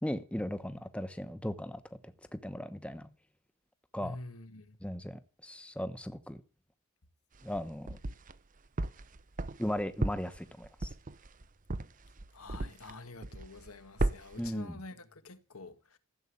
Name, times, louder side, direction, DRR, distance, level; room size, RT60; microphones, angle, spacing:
voice 1, 0.0-1.8 2.3-3.1 3.9-4.2 4.8-6.4 7.4-8.0 9.6-10.9 14.4-14.8, equal, 5° left, 1.0 m, -37 dB
voice 2, 4.0-4.8 12.3-16.0, left 2 dB, 80° left, 1.7 m, -47 dB
sound 1, 7.3-8.4 8.8-13.0 13.2-13.7 14.0-14.5, right 2 dB, 35° right, 0.7 m, -35 dB
15.0 x 8.1 x 9.8 m
head